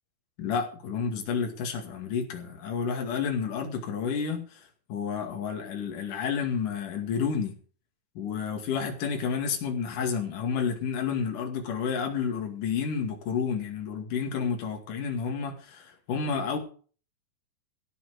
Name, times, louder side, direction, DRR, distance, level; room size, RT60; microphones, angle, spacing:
voice 1, 0.4-7.6 8.2-16.6, left 6 dB, 65° left, 3.8 m, -30 dB
16.0 x 5.9 x 8.1 m
omnidirectional pair, 4.0 m